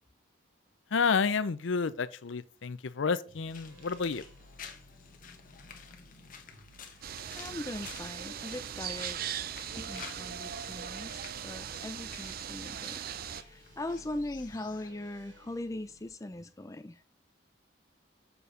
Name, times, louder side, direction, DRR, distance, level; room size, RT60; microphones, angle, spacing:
voice 1, 0.9-4.2, left 5 dB, 70° left, 0.5 m, -30 dB
sound 1, 3.3-14.9, left 6 dB, 45° left, 1.1 m, -51 dB
sound 2, 3.3-16.1, equal, 65° right, 2.0 m, -58 dB
sound 3, 7.0-13.4, right 9 dB, 45° right, 0.4 m, -39 dB
voice 2, 7.3-9.4 9.8-11.2 11.4-13.0 13.5-17.0, left 1 dB, 15° left, 0.4 m, -40 dB
6.8 x 4.6 x 5.0 m
head